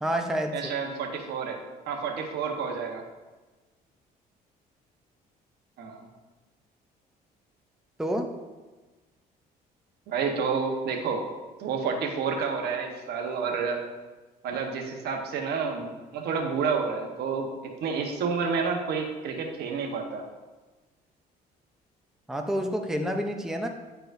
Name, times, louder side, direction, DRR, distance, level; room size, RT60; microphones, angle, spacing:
voice 1, 0.0-0.6 8.0-8.3 22.3-23.7, equal, 5° right, 3 dB, 0.6 m, -28 dB
voice 2, 0.5-1.6 1.9-3.0 5.8-6.1 10.1-11.2 11.6-13.8 14.4-17.5 17.8-20.3, right 5 dB, 75° right, 3 dB, 1.1 m, -29 dB
10.0 x 4.8 x 2.6 m, 1.2 s
cardioid pair, 110°, 17 cm